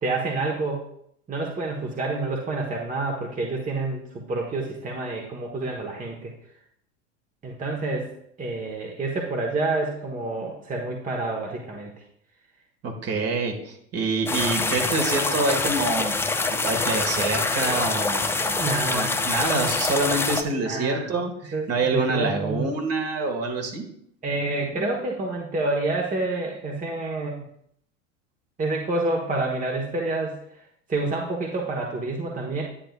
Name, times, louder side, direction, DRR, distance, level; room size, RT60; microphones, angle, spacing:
voice 1, 0.0-0.8 1.3-6.3 7.4-8.1 8.4-11.9 18.6-19.2 20.6-21.1 21.5-22.7 24.2-27.4 28.6-30.4 30.9-32.6, right 2 dB, 20° right, 0 dB, 1.2 m, -28 dB
voice 2, 12.8-16.1 16.5-23.8, right 3 dB, 40° right, 3 dB, 1.7 m, -26 dB
sound 1, 14.3-20.4, left 3 dB, 5° left, 0.4 m, -25 dB
10.0 x 7.7 x 2.4 m, 0.70 s
hypercardioid pair, 95°, 38 cm